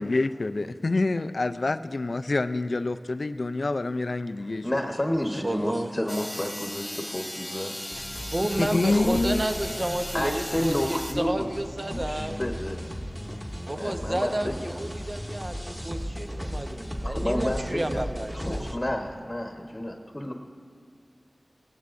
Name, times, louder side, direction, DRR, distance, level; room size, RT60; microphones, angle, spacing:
voice 1, 0.0-4.6 8.6-9.4, left 2 dB, 70° left, 12 dB, 0.4 m, -27 dB
voice 2, 4.4-7.8 8.6-9.2 10.1-11.5 11.9-13.1 13.7-15.1 17.0-18.0 18.4-20.3, left 1 dB, 30° left, 2 dB, 1.0 m, -31 dB
voice 3, 5.3-5.9 8.3-12.4 13.7-18.7, right 1 dB, 40° right, 6 dB, 0.9 m, -31 dB
sound 1, 5.5-18.8, equal, 5° right, 1.5 m, -37 dB
sound 2, 6.1-11.1, left 1 dB, 15° left, 1.4 m, -37 dB
17.5 x 16.5 x 2.6 m, 2.3 s
wide cardioid pair, 40°, 0 cm